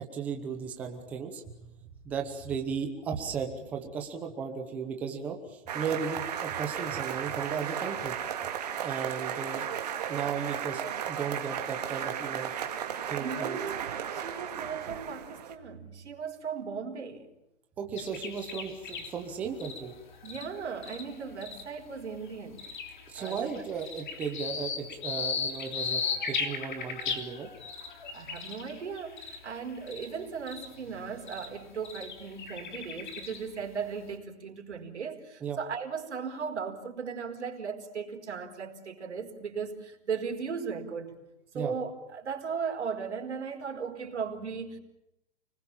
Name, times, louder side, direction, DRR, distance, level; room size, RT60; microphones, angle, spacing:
voice 1, 0.0-1.7 2.0-8.2 8.8-9.6 10.1-12.6 12.8-13.6 17.8-19.9 23.1-27.5 35.4-35.6 41.5-41.7, right 6 dB, 5° right, 3 dB, 0.9 m, -35 dB
sound 1, 5.7-15.5, right 9 dB, 35° right, 2.3 m, -35 dB
voice 2, 13.2-17.3 20.2-22.6 23.1-23.5 28.1-41.2 41.5-44.8, right 6 dB, 70° right, 3 dB, 4.8 m, -37 dB
sound 2, 18.0-21.8 22.3-30.2 30.5-30.7 31.3-31.5 31.8-33.6, left 5 dB, 40° left, 3.3 m, -37 dB
30.0 x 21.0 x 7.3 m, 0.87 s
hypercardioid pair, 180°, 36 cm